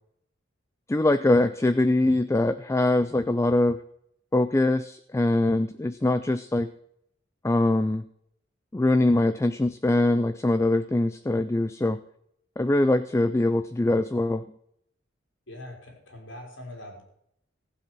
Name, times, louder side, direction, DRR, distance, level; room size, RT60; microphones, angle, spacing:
voice 1, 0.9-3.8 4.3-6.7 7.4-8.0 8.7-12.0 12.6-14.5, left 2 dB, 15° left, 12 dB, 0.4 m, -23 dB
voice 2, 15.5-17.0, left 1 dB, 80° left, 1 dB, 4.4 m, -42 dB
15.0 x 7.7 x 6.2 m, 0.72 s
head